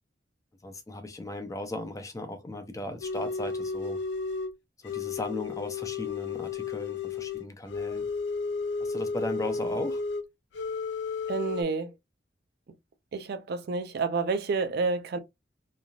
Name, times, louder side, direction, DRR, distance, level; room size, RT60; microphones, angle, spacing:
voice 1, 0.6-4.0 4.8-8.1 8.8-10.0, left 1 dB, 20° left, 0.5 m, -37 dB
sound 1, 3.0-4.5 4.8-10.2 10.5-11.6, left 4 dB, 75° left, 0.4 m, -33 dB
voice 2, 11.3-11.9 13.1-15.2, right 4 dB, 60° right, 0.4 m, -29 dB
3.2 x 2.5 x 2.3 m
head